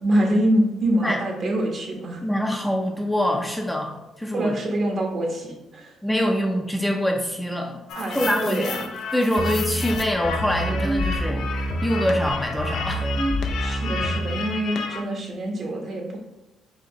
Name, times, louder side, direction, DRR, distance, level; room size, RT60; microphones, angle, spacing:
voice 1, 0.0-2.2 4.3-6.0 8.0-8.8 13.6-16.2, right 1 dB, 55° right, 0 dB, 1.2 m, -25 dB
voice 2, 2.2-4.5 6.0-7.8 8.1-8.7 9.1-13.1, equal, 5° left, 1 dB, 0.6 m, -24 dB
sound 1, 7.9-15.0, left 4 dB, 75° left, 0.5 m, -33 dB
sound 2, 9.4-14.4, equal, 30° left, 0.9 m, -27 dB
5.0 x 2.9 x 2.9 m, 0.99 s
cardioid pair, 90°, 0 cm